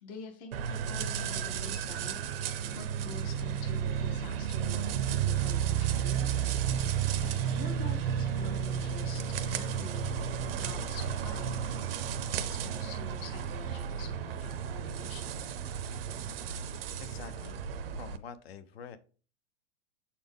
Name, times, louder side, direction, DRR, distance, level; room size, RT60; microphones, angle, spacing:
voice 1, 0.0-6.8 7.2-15.4, left 4 dB, 20° left, 4 dB, 0.5 m, -47 dB
sound 1, 0.5-18.2, right 9 dB, 50° right, 0.6 m, -33 dB
sound 2, 4.6-11.6, left 2 dB, 85° left, 1.1 m, -44 dB
voice 2, 17.0-17.6 18.0-19.0, left 7 dB, 55° left, 12 dB, 0.7 m, -46 dB
7.1 x 4.2 x 3.6 m, 0.37 s
supercardioid pair, 175°, 37 cm